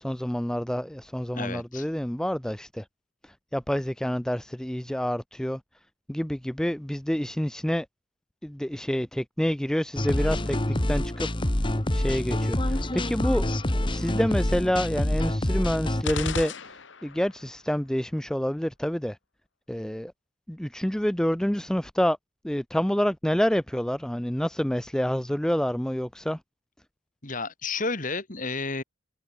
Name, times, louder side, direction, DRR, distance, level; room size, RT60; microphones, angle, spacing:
voice 1, 0.0-2.9 3.2-5.6 6.1-7.9 8.4-10.6 10.9-11.3 11.9-19.2 19.7-20.1 20.5-22.2 22.4-26.4, equal, 5° left, 0.4 m, -28 dB
voice 2, 1.3-1.9 27.2-28.8, left 3 dB, 40° left, 2.6 m, -31 dB
sound 1, 10.0-16.0, left 1 dB, 25° left, 1.5 m, -26 dB
sound 2, 16.0-17.3, left 4 dB, 60° left, 1.7 m, -32 dB
head